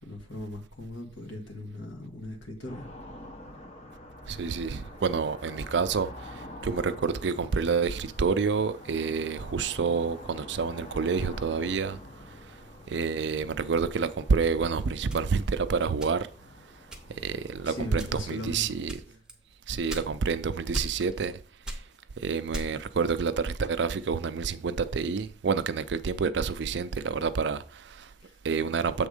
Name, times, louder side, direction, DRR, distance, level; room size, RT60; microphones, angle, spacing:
voice 1, 0.0-2.8 17.6-18.8 28.2-28.3, left 1 dB, 80° left, 1.6 m, -39 dB
sound 1, 2.7-18.1, left 1 dB, 35° left, 0.9 m, -47 dB
voice 2, 4.3-12.0 12.9-16.3 17.2-19.0 19.7-21.4 22.2-28.1 28.4-29.1, right 5 dB, 65° right, 0.4 m, -28 dB
sound 2, 15.1-16.5 16.9-17.4 17.9-18.4 18.9-20.4 20.7-21.3 21.6-23.0, right 1 dB, 5° right, 0.9 m, -38 dB
7.2 x 3.5 x 5.0 m
head